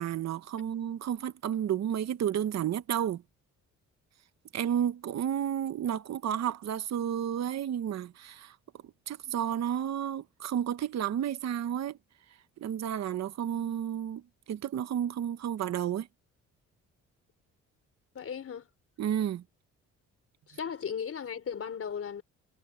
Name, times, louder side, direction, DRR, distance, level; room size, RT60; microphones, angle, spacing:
voice 1, 0.0-3.2 4.5-8.5 9.1-12.0 12.6-14.2 14.5-16.1 19.0-19.4, right 10 dB, 60° right, 1.2 m, -31 dB
voice 2, 18.1-18.7 20.5-22.2, left 7 dB, 50° left, 4.5 m, -36 dB
cardioid pair, 90°, 30 cm